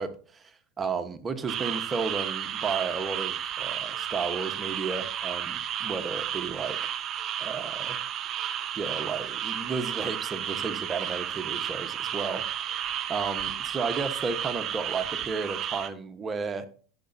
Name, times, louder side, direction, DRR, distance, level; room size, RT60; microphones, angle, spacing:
voice 1, 0.0-6.8 7.4-8.0 8.7-16.7, right 5 dB, 25° right, 8 dB, 1.4 m, -33 dB
sound 1, 1.5-15.9, right 10 dB, 40° right, 0.9 m, -32 dB
15.5 x 6.9 x 2.8 m, 0.41 s
hypercardioid pair, 95°, 0 cm